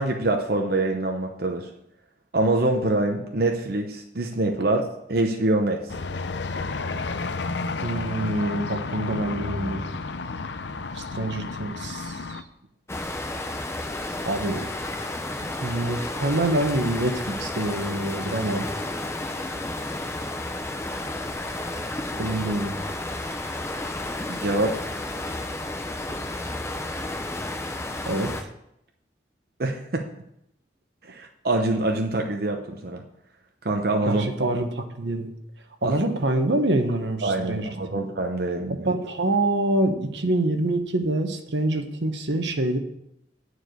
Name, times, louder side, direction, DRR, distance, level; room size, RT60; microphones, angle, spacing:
voice 1, 0.0-1.7 2.3-4.8 5.1-6.0 24.3-24.9 29.6-30.1 31.1-33.0 33.6-34.5 35.8-36.0 37.2-38.9, right 2 dB, 60° right, 2 dB, 0.8 m, -25 dB
sound 1, 5.9-12.4, left 3 dB, 75° left, 0.6 m, -31 dB
voice 2, 7.8-9.8 10.9-12.4 14.3-14.6 15.5-18.7 22.2-22.7 28.1-28.5 34.1-34.7 34.9-35.3 35.8-38.0 38.7-42.8, right 1 dB, 80° right, 6 dB, 1.1 m, -26 dB
sound 2, 12.9-28.4, left 2 dB, 15° left, 0.7 m, -32 dB
9.3 x 4.8 x 7.8 m, 0.79 s
head